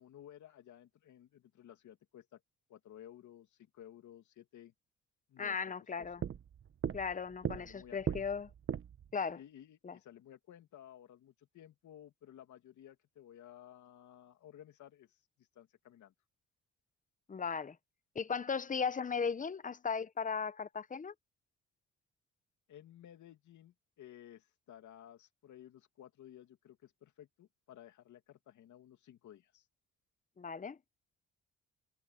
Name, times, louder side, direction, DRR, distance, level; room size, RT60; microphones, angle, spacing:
voice 1, 0.0-2.4 2.7-4.7 5.3-5.6 6.0-6.1 7.5-8.2 9.3-16.1 22.7-29.7, left 11 dB, 75° left, 2.7 m, -56 dB
voice 2, 5.4-6.2 6.9-8.5 9.1-9.4 9.8-10.0 17.3-17.8 18.1-21.1 30.4-30.8, left 5 dB, 25° left, 0.9 m, -37 dB
sound 1, 6.0-9.1, right 8 dB, 45° right, 1.1 m, -39 dB
cardioid pair, 90°, 30 cm